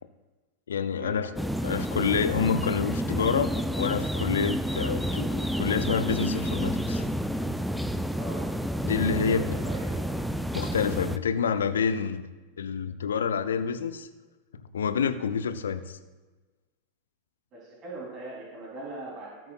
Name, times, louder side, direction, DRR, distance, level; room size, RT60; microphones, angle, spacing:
voice 1, 0.7-1.3 1.6-7.0 8.8-9.6 10.5-12.3 12.6-14.1 14.7-16.0, left 6 dB, 65° left, 11 dB, 0.7 m, -28 dB
sound 1, 1.4-11.2, equal, ahead, 0.5 m, -30 dB
voice 2, 8.1-8.5 9.3-10.1 17.5-19.5, right 2 dB, 35° right, -5 dB, 3.2 m, -41 dB
18.0 x 7.8 x 2.4 m, 1.3 s
figure-of-eight pair, 90°, 0 cm